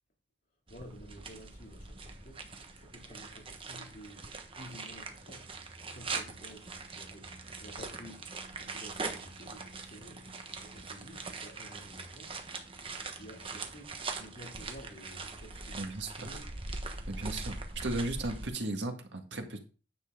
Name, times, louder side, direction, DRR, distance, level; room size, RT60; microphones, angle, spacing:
voice 1, 0.7-12.5 13.0-16.5, equal, 50° left, 2.7 m, -52 dB
sound 1, 0.7-18.5, right 3 dB, 30° right, 1.2 m, -42 dB
voice 2, 15.8-16.1 17.1-19.6, right 2 dB, 80° right, 1.9 m, -36 dB
9.8 x 7.3 x 3.7 m
head